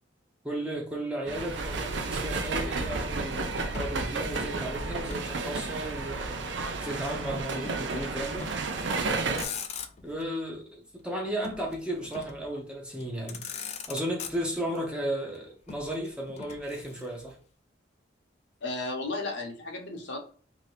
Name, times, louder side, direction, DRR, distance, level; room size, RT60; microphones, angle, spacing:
voice 1, 0.4-6.5 6.8-8.5 10.0-13.4 13.9-17.4, right 1 dB, 5° right, 0.6 m, -34 dB
sound 1, 1.3-9.4, right 3 dB, 65° right, 0.4 m, -32 dB
Motor vehicle (road), 3.7-5.3 5.6-6.7 7.6-7.9 8.3-8.8 9.2-10.2 11.4-12.5 13.0-13.1 13.3-14.8 15.7-17.3, left 7 dB, 35° left, 0.3 m, -42 dB
voice 2, 18.6-20.2, left 2 dB, 60° left, 0.7 m, -34 dB
2.7 x 2.7 x 3.2 m
head